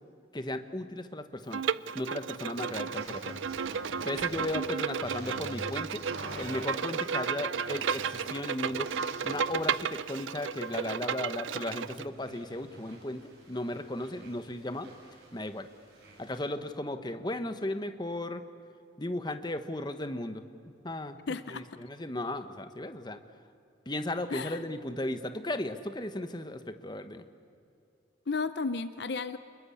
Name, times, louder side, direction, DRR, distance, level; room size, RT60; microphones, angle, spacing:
voice 1, 0.3-1.6 1.9-3.4 4.0-6.0 6.4-8.9 9.2-14.9 15.3-15.7 16.2-18.4 19.0-20.4 20.8-21.2 21.5-23.2 23.9-27.2, left 1 dB, 20° left, 9 dB, 1.1 m, -35 dB
Bowed string instrument, 1.5-12.0, right 6 dB, 75° right, 0.6 m, -33 dB
sound 1, 2.5-16.4, right 1 dB, 55° right, 7.7 m, -47 dB
voice 2, 21.3-21.6 24.3-24.6 28.3-29.4, left 4 dB, 55° left, 12 dB, 0.6 m, -33 dB
29.0 x 21.5 x 8.6 m, 2.5 s
head